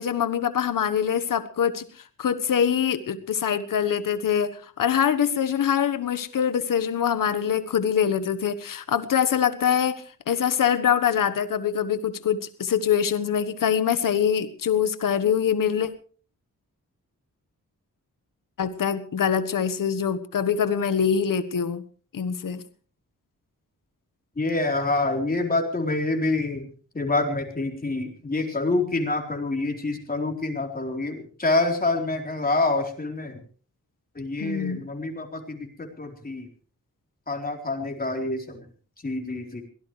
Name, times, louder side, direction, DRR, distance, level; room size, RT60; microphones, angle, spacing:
voice 1, 0.0-1.8 2.2-15.9 18.6-21.8 22.1-22.6 34.4-34.8, left 8 dB, 85° left, 11 dB, 1.4 m, -24 dB
voice 2, 24.4-26.7 26.9-33.4 34.1-36.5 37.3-38.6 39.0-39.6, left 2 dB, 30° left, 2 dB, 4.0 m, -27 dB
23.5 x 17.5 x 3.3 m, 0.41 s
wide cardioid pair, 130°, 32 cm